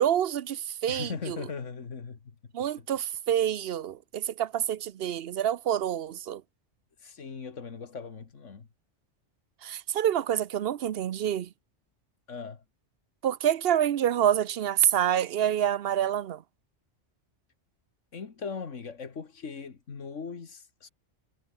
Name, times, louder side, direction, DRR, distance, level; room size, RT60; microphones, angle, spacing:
voice 1, 0.0-1.4 2.5-6.4 9.6-11.5 13.2-16.4, right 10 dB, 60° right, 0.8 m, -27 dB
voice 2, 0.9-2.3 2.8-2.9 7.0-8.7 12.3-12.6 18.1-20.9, left 5 dB, 90° left, 2.2 m, -39 dB
omnidirectional pair, 1.2 m